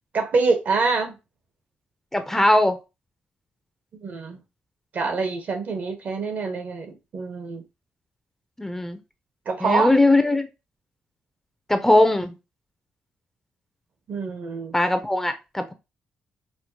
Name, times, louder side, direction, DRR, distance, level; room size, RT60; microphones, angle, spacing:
voice 1, 0.1-1.2 3.9-4.4 4.9-7.6 9.5-9.9 14.1-14.8, right 4 dB, 60° right, 0.9 m, -25 dB
voice 2, 2.1-2.8 8.6-9.0 9.6-10.5 11.7-12.3 14.7-15.7, left 1 dB, 10° left, 0.5 m, -20 dB
4.4 x 2.0 x 2.8 m
cardioid pair, 80°, 4 cm